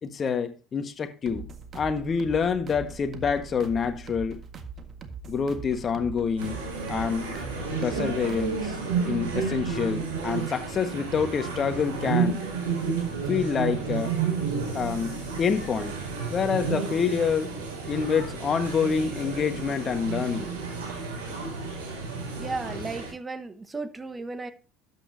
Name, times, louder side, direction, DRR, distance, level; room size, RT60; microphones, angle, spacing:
voice 1, 0.0-4.4 5.3-6.6 6.9-7.3 7.8-8.8 9.1-12.4 13.3-14.2 14.7-15.9 16.3-17.6 17.8-20.5, left 6 dB, 40° left, 1.5 m, -27 dB
sound 1, 1.3-8.8, right 4 dB, 45° right, 1.7 m, -41 dB
sound 2, 6.4-23.1, right 5 dB, 85° right, 5.3 m, -31 dB
voice 2, 22.4-24.5, right 3 dB, 20° right, 1.3 m, -34 dB
12.5 x 8.8 x 2.8 m
hypercardioid pair, 75°, 0 cm